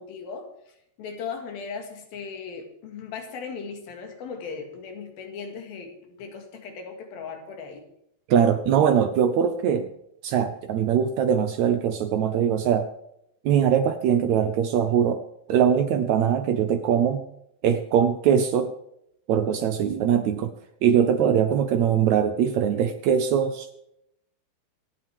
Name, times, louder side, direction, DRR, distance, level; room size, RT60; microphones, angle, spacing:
voice 1, 0.0-7.8, left 5 dB, 80° left, 4 dB, 3.7 m, -38 dB
voice 2, 8.3-9.9 10.2-12.9 13.4-15.2 15.5-17.2 17.6-18.7 19.3-20.5 20.8-23.7, right 8 dB, 80° right, 8 dB, 1.6 m, -22 dB
25.5 x 8.6 x 3.5 m, 0.77 s
omnidirectional pair, 4.2 m